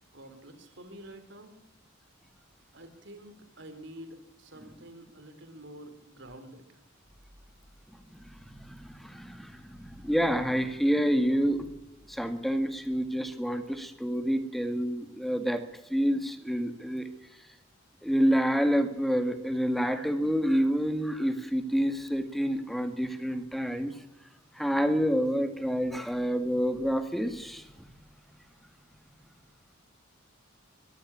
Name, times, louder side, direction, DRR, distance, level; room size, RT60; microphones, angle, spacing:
voice 1, 0.1-1.6 2.7-6.8, right 1 dB, 60° right, 8 dB, 3.8 m, -48 dB
voice 2, 8.4-11.7 12.1-15.6 15.9-17.1 18.0-23.9 24.5-27.7, equal, ahead, 8 dB, 2.0 m, -28 dB
22.0 x 14.5 x 8.6 m, 0.91 s
head